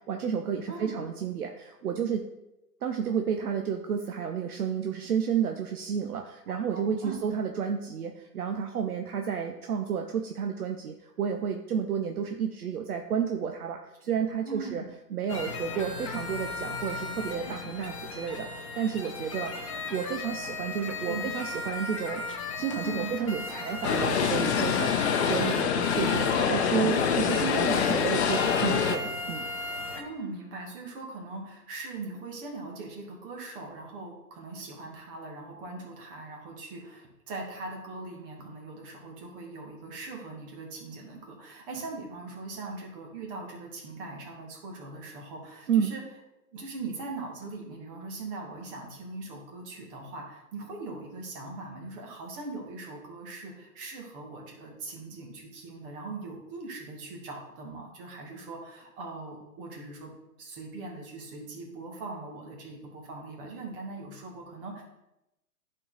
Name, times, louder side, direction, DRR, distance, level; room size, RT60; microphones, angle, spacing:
voice 1, 0.1-2.3 2.8-14.8 15.1-22.2 22.6-29.4 45.7-45.9, right 7 dB, 65° right, 4 dB, 0.8 m, -31 dB
voice 2, 0.7-1.0 6.5-7.4 14.2-14.7 21.0-21.4 21.9-22.1 22.8-23.1 25.7-26.3 30.0-46.0 46.5-60.1 60.4-64.8, right 3 dB, 35° right, 0 dB, 2.0 m, -41 dB
sound 1, 15.3-30.0, left 3 dB, 25° left, 0.4 m, -36 dB
sound 2, 23.8-29.0, left 7 dB, 45° left, 0.8 m, -25 dB
10.5 x 4.6 x 4.0 m, 0.93 s
hypercardioid pair, 130°, 48 cm